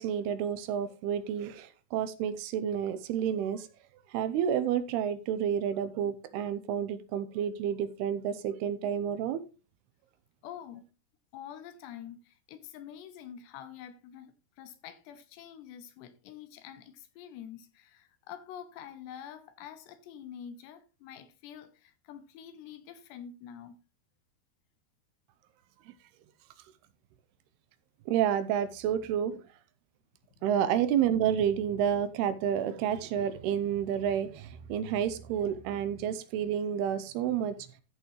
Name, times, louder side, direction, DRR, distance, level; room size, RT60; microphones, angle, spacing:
voice 1, 0.0-3.7 4.1-9.4 25.9-26.0 28.1-29.4 30.4-37.6, right 9 dB, 80° right, 2.6 m, -30 dB
voice 2, 10.4-10.8 11.3-23.8 30.4-30.5, left 9 dB, 80° left, 3.2 m, -47 dB
14.0 x 6.6 x 3.1 m
omnidirectional pair, 4.9 m